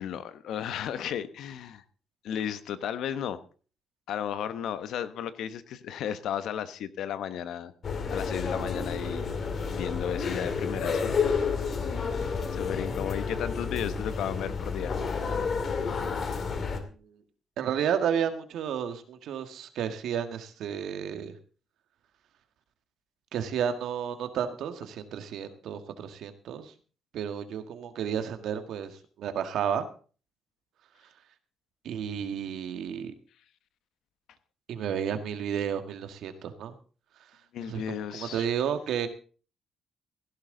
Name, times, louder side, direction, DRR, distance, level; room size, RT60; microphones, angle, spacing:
voice 1, 0.0-1.8 2.2-3.4 4.1-7.7 8.1-9.2 9.7-11.5 11.9-12.1 12.5-14.9 37.5-38.5, left 9 dB, 80° left, 12 dB, 1.1 m, -34 dB
sound 1, 7.8-16.8, left 5 dB, 50° left, 2.4 m, -30 dB
voice 2, 17.6-21.3 23.3-26.7 27.1-29.9 31.8-33.1 34.7-36.7 37.7-39.1, right 8 dB, 75° right, 8 dB, 1.7 m, -32 dB
16.0 x 11.5 x 3.9 m, 0.39 s
cardioid pair, 90°, 0 cm